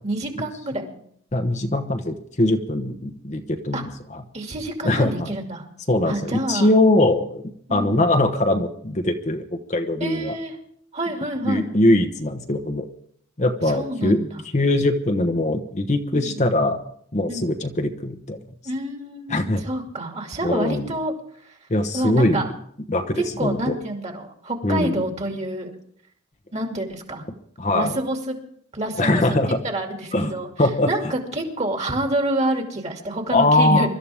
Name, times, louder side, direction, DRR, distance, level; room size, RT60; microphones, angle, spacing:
voice 1, 0.0-0.9 3.7-3.8 4.3-5.6 6.0-6.7 7.7-8.1 10.0-10.6 10.9-11.7 13.7-14.4 16.1-16.5 17.3-17.5 18.6-21.1 21.4-21.6 21.9-22.5 23.4-25.7 26.5-27.2 27.7-28.4 28.7-29.2 29.6-30.5 30.9-33.9, right 1 dB, 35° right, 3 dB, 2.5 m, -27 dB
voice 2, 1.3-4.2 4.8-5.3 5.9-7.4 7.7-10.3 11.4-12.9 13.4-14.3 14.5-16.8 17.1-18.4 19.3-19.6 20.4-20.9 21.7-22.4 22.9-23.8 24.6-25.0 27.6-28.0 29.0-29.6 30.1-30.3 30.6-30.9 33.3-33.9, left 1 dB, 35° left, 5 dB, 1.1 m, -21 dB
24.0 x 13.0 x 3.5 m, 0.65 s
head